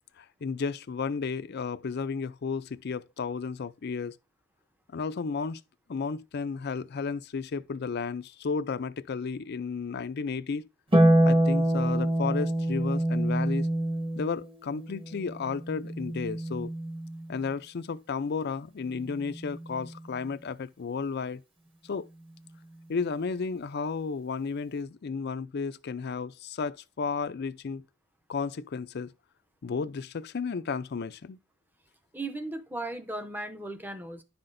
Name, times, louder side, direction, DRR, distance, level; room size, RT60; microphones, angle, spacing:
voice 1, 0.2-4.2 4.9-5.6 5.9-10.7 11.2-13.7 14.2-16.7 17.3-21.4 21.8-22.1 22.9-27.8 28.3-29.1 29.6-31.4, left 5 dB, 50° left, 0.4 m, -33 dB
Harp, 10.9-17.4 19.1-20.1, right 1 dB, 25° right, 1.1 m, -26 dB
voice 2, 32.1-34.2, right 2 dB, 10° right, 0.6 m, -36 dB
10.5 x 5.8 x 2.6 m
head